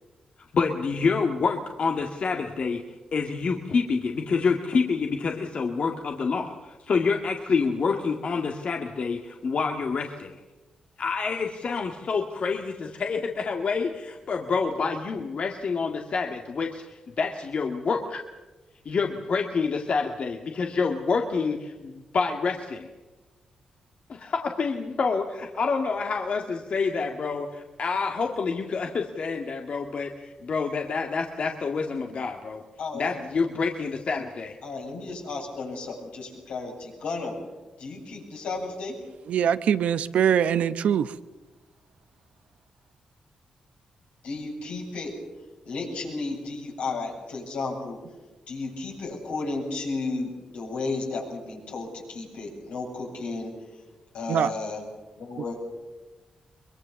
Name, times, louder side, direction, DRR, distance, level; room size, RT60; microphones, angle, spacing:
voice 1, 0.5-2.8 3.1-10.4 11.0-18.2 18.9-22.9 24.1-32.6 32.9-34.6, left 4 dB, 60° left, 1.9 m, -27 dB
voice 2, 32.8-33.1 34.6-37.3 37.8-39.0 44.2-45.1 45.6-48.0 48.5-53.5 54.1-54.8 55.2-55.6, left 3 dB, 85° left, 8.0 m, -33 dB
voice 3, 39.3-41.1 54.3-54.5, right 8 dB, 80° right, 0.9 m, -22 dB
23.0 x 22.5 x 7.1 m
supercardioid pair, 50°, 2 cm